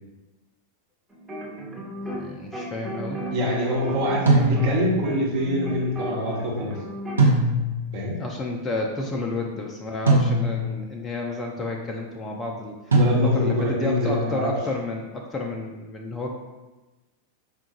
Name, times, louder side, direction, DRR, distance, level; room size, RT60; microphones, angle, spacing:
sound 1, 1.1-2.3 2.5-7.3, equal, 10° right, 0.9 m, -35 dB
voice 1, 1.9-3.3 8.2-16.3, left 2 dB, 15° left, 0 dB, 0.4 m, -31 dB
voice 2, 3.3-6.8 7.9-8.2 12.9-14.5, equal, 45° right, -3 dB, 1.1 m, -25 dB
sound 2, 4.3-5.0 7.2-7.9 10.1-10.8 12.9-13.7, right 1 dB, 75° right, 0.8 m, -21 dB
5.0 x 2.4 x 2.8 m, 1.1 s
figure-of-eight pair, 90°, 0 cm